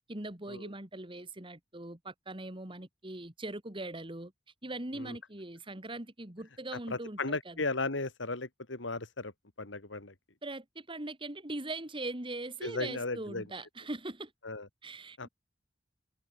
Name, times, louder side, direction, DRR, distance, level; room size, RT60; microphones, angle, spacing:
voice 1, 0.1-4.3 4.6-7.6 10.4-14.3 14.8-15.3, right 2 dB, 30° right, 2.7 m, -41 dB
voice 2, 6.9-9.3 9.6-10.1 12.6-13.4 14.4-14.7 15.2-15.3, left 3 dB, 90° left, 2.5 m, -35 dB
head